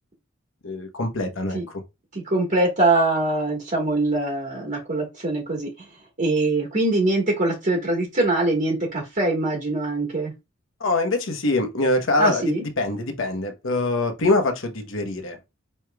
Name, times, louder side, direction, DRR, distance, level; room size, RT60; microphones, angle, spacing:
voice 1, 0.6-1.8 10.8-15.4, left 2 dB, 80° left, 1.0 m, -24 dB
voice 2, 2.1-5.8 6.2-10.3 12.2-12.6, right 2 dB, 45° right, 1.4 m, -23 dB
5.3 x 3.2 x 2.3 m
head